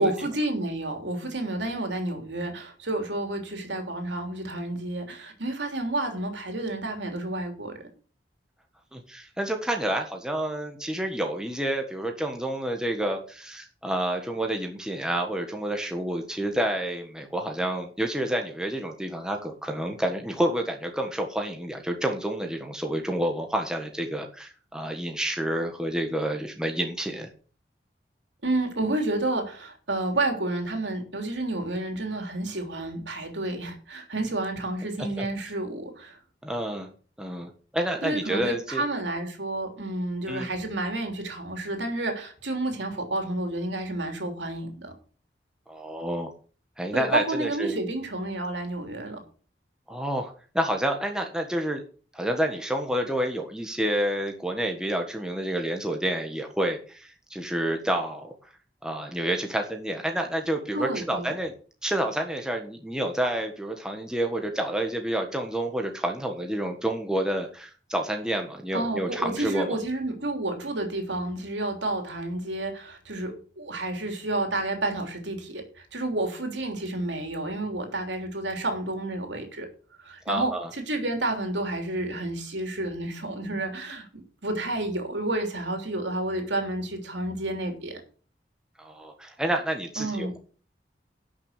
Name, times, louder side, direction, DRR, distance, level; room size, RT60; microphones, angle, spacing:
voice 1, 0.0-7.7 28.4-36.2 38.0-44.9 46.9-49.2 60.7-61.3 68.7-79.7 80.0-84.1 84.4-88.0 90.0-90.3, right 2 dB, 85° right, 4 dB, 3.3 m, -30 dB
voice 2, 8.9-27.3 35.2-35.3 36.4-36.9 37.2-38.8 40.3-40.5 45.7-46.3 46.8-47.8 49.9-51.8 52.1-58.3 58.8-61.5 61.8-69.8 80.2-80.7 88.8-90.4, right 1 dB, 5° right, 3 dB, 1.5 m, -29 dB
12.0 x 6.2 x 6.7 m, 0.40 s
head